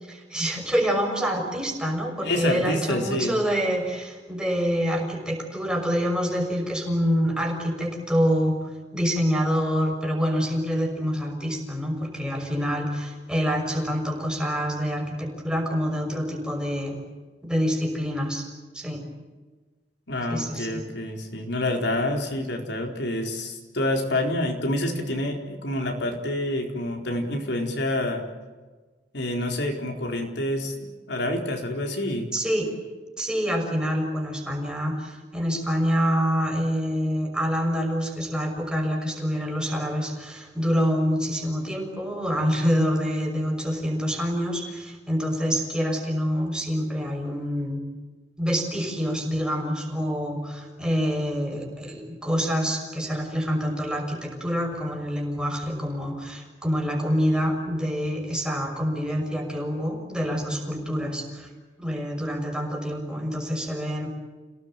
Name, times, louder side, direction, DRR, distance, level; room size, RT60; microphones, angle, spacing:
voice 1, 0.1-17.0 17.4-18.5 18.7-19.0 20.3-20.8 32.3-32.7 33.2-47.9 48.4-61.5 61.8-64.1, equal, 5° right, 1 dB, 6.0 m, -26 dB
voice 2, 2.2-3.4 20.1-28.3 29.1-30.7 31.1-32.3, left 1 dB, 70° left, 2 dB, 4.3 m, -27 dB
29.5 x 18.0 x 9.1 m, 1.3 s
head